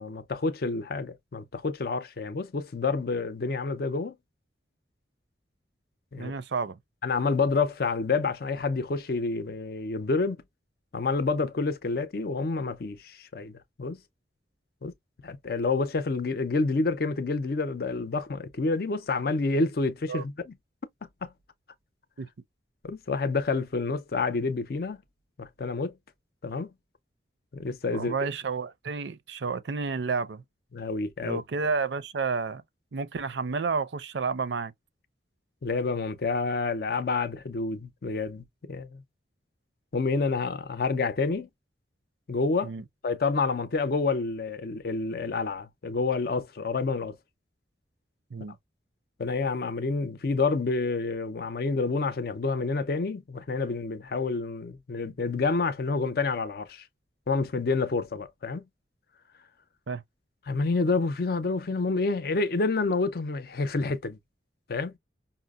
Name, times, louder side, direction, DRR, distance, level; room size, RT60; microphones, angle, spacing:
voice 1, 0.0-4.1 6.1-6.3 7.0-10.4 10.9-14.0 14.8-14.9 15.2-20.5 21.2-21.3 22.8-25.0 25.4-25.9 26.4-26.7 27.5-28.1 30.7-31.4 35.6-39.0 39.9-41.5 42.3-42.7 43.0-47.1 49.2-56.8 57.3-58.6 60.5-64.2 64.7-64.9, left 3 dB, 55° left, 0.5 m, -28 dB
voice 2, 6.2-6.8 20.1-20.2 22.2-22.3 27.9-30.4 31.2-32.6 32.9-34.7 42.6-42.8 48.3-48.6 59.9-60.0, right 4 dB, 75° right, 0.5 m, -31 dB
5.5 x 2.0 x 2.3 m
head